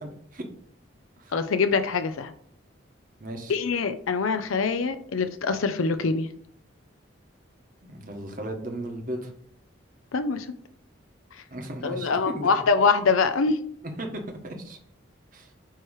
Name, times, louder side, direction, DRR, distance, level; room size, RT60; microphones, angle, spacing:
voice 1, 0.0-0.4 1.2-1.3 3.2-3.6 7.8-9.3 11.5-12.5 14.0-14.1 14.4-14.8 15.3-15.5, right 1 dB, 40° right, 3 dB, 1.2 m, -36 dB
voice 2, 1.3-2.3 3.5-6.3 10.1-10.5 11.8-13.6, left 4 dB, 85° left, 8 dB, 0.5 m, -24 dB
9.1 x 3.1 x 4.8 m, 0.63 s
head